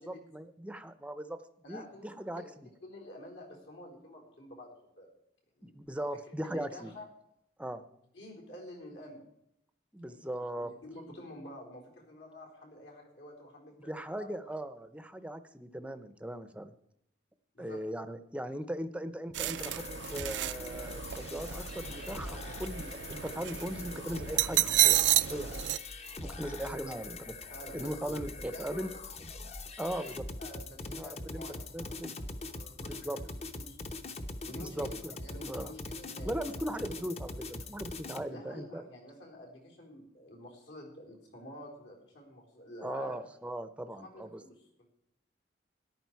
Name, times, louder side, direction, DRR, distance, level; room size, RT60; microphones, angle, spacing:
voice 1, 0.0-1.4 1.7-2.7 5.6-6.9 7.6-7.8 9.9-10.7 13.8-16.7 17.6-25.0 25.3-25.5 26.2-27.3 27.7-28.9 29.8-30.2 30.9-32.2 32.8-33.2 34.6-35.2 35.4-35.7 36.2-38.8 42.8-44.4, right 1 dB, 5° right, 11 dB, 0.6 m, -39 dB
voice 2, 1.6-2.1 2.3-2.5 2.8-4.7 5.0-5.1 5.6-5.7 6.3-7.1 8.1-9.2 10.0-14.5 17.5-17.8 26.6-27.0 27.5-28.2 28.5-28.9 29.8-33.8 34.5-36.7 38.3-43.2 43.8-44.9, left 1 dB, 75° left, 0 dB, 4.1 m, -49 dB
sound 1, 19.3-25.8, right 14 dB, 70° right, 0.4 m, -31 dB
sound 2, 19.6-38.2, left 2 dB, 35° left, 0.8 m, -43 dB
13.5 x 11.0 x 4.7 m, 0.76 s
head